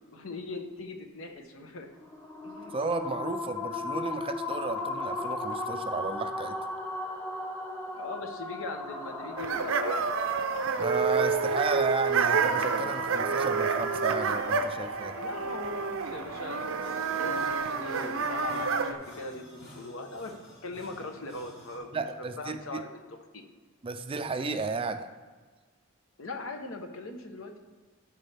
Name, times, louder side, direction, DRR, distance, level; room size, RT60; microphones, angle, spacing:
voice 1, 0.1-1.9 2.4-2.7 7.9-10.1 15.2-19.5 19.7-20.3 20.6-22.1 22.4-22.9 23.3-23.4 24.1-24.2 26.2-27.6, left 2 dB, 70° left, 5 dB, 0.9 m, -40 dB
sound 1, 2.0-19.3, left 2 dB, 10° left, 0.8 m, -39 dB
voice 2, 2.7-6.6 10.8-15.2 21.9-22.8 23.8-25.1, right 4 dB, 25° right, 8 dB, 0.4 m, -33 dB
sound 2, 9.4-18.9, right 5 dB, 70° right, 0.6 m, -29 dB
sound 3, 16.8-21.8, equal, 50° left, 2.4 m, -50 dB
13.0 x 5.3 x 3.4 m, 1.4 s
head